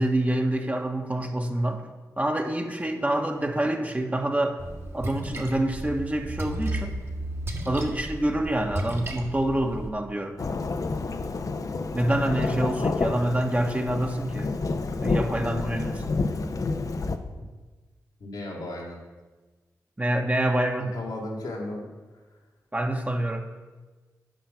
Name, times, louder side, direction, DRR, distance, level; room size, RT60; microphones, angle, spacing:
voice 1, 0.0-1.9 2.2-4.6 4.9-6.9 7.7-10.4 11.9-14.5 15.0-16.2 20.0-20.9 22.7-23.4, right 1 dB, 20° right, 4 dB, 1.1 m, -26 dB
Splash splatter, 4.6-9.9, right 1 dB, 35° right, 1.4 m, -34 dB
Thunderstorm / Rain, 10.4-17.2, left 3 dB, 55° left, 0.7 m, -29 dB
voice 2, 18.2-19.0 20.9-21.9, left 1 dB, 85° left, -3 dB, 2.2 m, -35 dB
9.1 x 5.6 x 5.8 m, 1.3 s
supercardioid pair, 40°, 7 cm